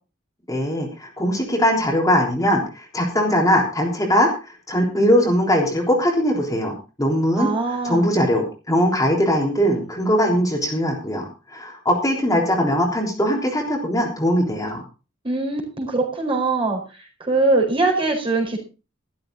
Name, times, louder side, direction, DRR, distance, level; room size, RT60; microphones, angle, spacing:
voice 1, 0.5-14.8, equal, 15° left, -1 dB, 3.6 m, -21 dB
voice 2, 7.4-8.0 15.2-16.8 17.2-18.6, right 3 dB, 25° right, 1 dB, 4.7 m, -22 dB
13.5 x 13.5 x 3.9 m, 0.33 s
head